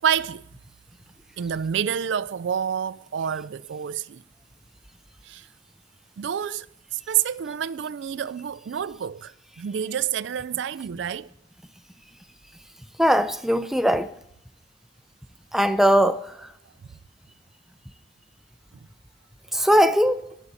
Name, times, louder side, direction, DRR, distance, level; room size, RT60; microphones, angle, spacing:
voice 1, 0.0-0.4 1.4-4.2 5.2-5.5 6.2-6.7 6.9-11.3, right 8 dB, 70° right, 0.4 m, -28 dB
voice 2, 13.0-14.1 15.5-16.2 19.5-20.2, equal, ahead, 0.5 m, -19 dB
19.5 x 7.2 x 4.1 m
head